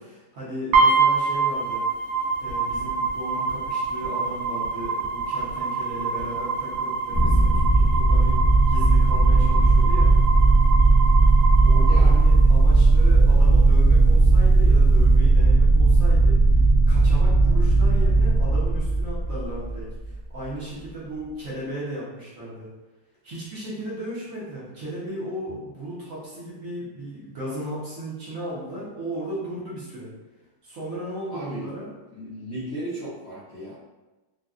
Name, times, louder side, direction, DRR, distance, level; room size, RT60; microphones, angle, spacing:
voice 1, 0.0-1.8 2.4-8.4 8.7-10.1 11.6-16.4 16.9-22.7 23.2-30.1 30.6-31.9, right 1 dB, 55° right, -8 dB, 0.9 m, -35 dB
sound 1, 0.7-12.7, right 4 dB, 90° right, 1.5 m, -26 dB
sound 2, 7.1-20.1, right 3 dB, 25° right, 0.6 m, -17 dB
voice 2, 11.8-12.2 31.3-31.7 32.1-33.8, right 1 dB, 55° left, -12 dB, 0.8 m, -35 dB
3.9 x 2.2 x 2.4 m, 1.1 s
omnidirectional pair, 2.3 m